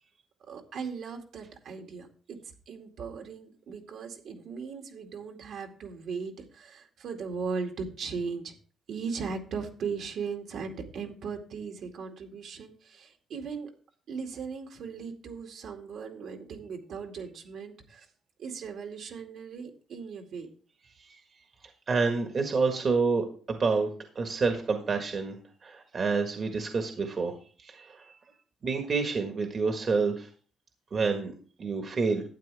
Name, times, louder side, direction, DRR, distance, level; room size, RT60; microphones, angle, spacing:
voice 1, 0.5-2.4 2.7-8.5 8.9-13.7 14.1-18.1 18.4-20.5, right 5 dB, 70° right, 2 dB, 2.4 m, -38 dB
voice 2, 21.9-23.9 24.1-25.4 25.6-28.1 28.6-30.3 30.9-31.3 31.6-32.2, right 4 dB, 45° right, 4 dB, 1.6 m, -28 dB
12.0 x 8.8 x 3.5 m, 0.41 s
cardioid pair, 90°, 0 cm